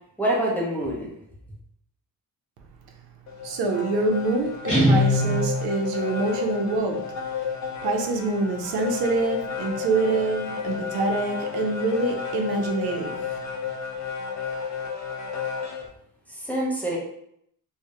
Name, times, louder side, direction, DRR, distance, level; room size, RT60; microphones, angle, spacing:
voice 1, 0.2-1.1 16.3-17.0, right 1 dB, 5° left, -5 dB, 0.6 m, -26 dB
sound 1, 3.3-15.9, left 6 dB, 50° left, 0.4 m, -32 dB
voice 2, 3.4-7.0 7.8-13.2, right 3 dB, 85° right, 3 dB, 0.5 m, -25 dB
Guitar, 4.7-5.9, left 1 dB, 20° left, 0.9 m, -21 dB
2.3 x 2.0 x 2.8 m, 0.73 s
cardioid pair, 125°, 37 cm